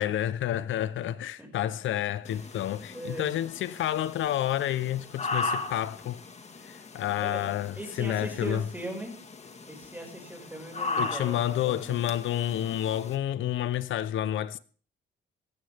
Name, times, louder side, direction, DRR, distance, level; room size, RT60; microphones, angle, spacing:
voice 1, 0.0-6.2 6.6-8.6 11.0-14.6, left 12 dB, 75° left, 0.9 m, -29 dB
voice 2, 1.4-1.7 2.9-3.3 7.2-7.5 7.8-9.2 9.7-12.0, right 1 dB, 10° right, 5.9 m, -39 dB
sound 1, 2.2-13.2, left 3 dB, 35° left, 2.0 m, -38 dB
17.0 x 14.5 x 3.6 m
cardioid pair, 90°, 20 cm